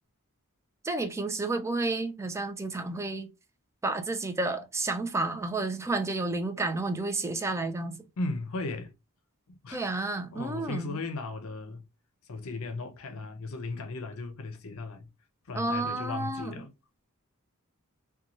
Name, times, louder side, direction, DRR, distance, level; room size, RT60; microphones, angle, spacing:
voice 1, 0.8-3.3 3.8-8.0 9.7-11.0 15.5-16.5, right 2 dB, 15° right, 0.4 m, -31 dB
voice 2, 8.2-8.9 9.5-9.8 10.3-11.9 12.3-15.1 15.5-16.7, left 3 dB, 70° left, 0.6 m, -36 dB
2.6 x 2.2 x 2.8 m
head